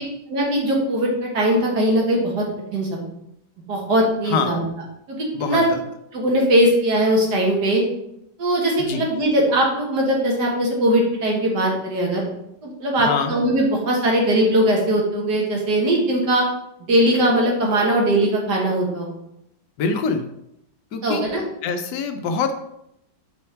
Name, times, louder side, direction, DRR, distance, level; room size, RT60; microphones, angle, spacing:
voice 1, 0.3-2.5 2.7-3.0 3.7-4.6 5.1-5.7 6.1-7.8 8.4-12.2 12.6-16.5 16.9-19.1 21.0-21.4, right 1 dB, 65° right, -2 dB, 2.1 m, -20 dB
voice 2, 4.3-4.6 5.3-5.8 8.8-9.0 13.0-13.3 19.8-20.3 20.9-21.2 21.6-22.5, left 5 dB, 75° left, 7 dB, 1.2 m, -24 dB
5.5 x 4.3 x 4.4 m, 0.79 s
omnidirectional pair, 1.9 m